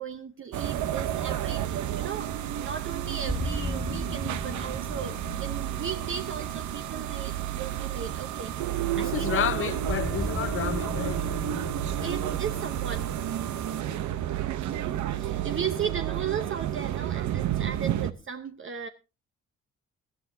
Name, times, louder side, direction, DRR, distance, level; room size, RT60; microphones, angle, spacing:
voice 1, 0.0-8.6 8.8-9.3 12.0-13.1 14.6-18.9, right 7 dB, 45° right, 0.9 m, -36 dB
sound 1, 0.5-18.1, right 12 dB, 75° right, 0.9 m, -31 dB
sound 2, 3.2-8.2 9.8-15.5, left 1 dB, 5° left, 2.0 m, -37 dB
voice 2, 8.9-11.2 13.8-14.0, left 10 dB, 45° left, 0.6 m, -31 dB
20.5 x 12.0 x 2.7 m
cardioid pair, 90°, 30 cm